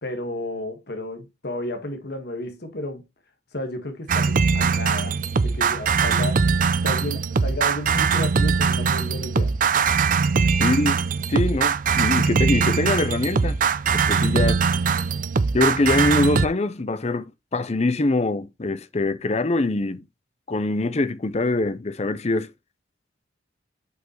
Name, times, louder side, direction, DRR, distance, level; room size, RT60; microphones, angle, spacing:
voice 1, 0.0-3.0 3.5-6.4 6.8-9.5 10.4-10.5, left 1 dB, 55° left, 1.6 m, -32 dB
sound 1, 4.1-16.5, right 5 dB, 45° right, 0.5 m, -21 dB
voice 2, 10.6-11.0 11.3-13.6 13.9-14.6 15.5-20.1 20.5-22.5, left 2 dB, 35° left, 0.6 m, -23 dB
8.0 x 5.3 x 3.0 m
head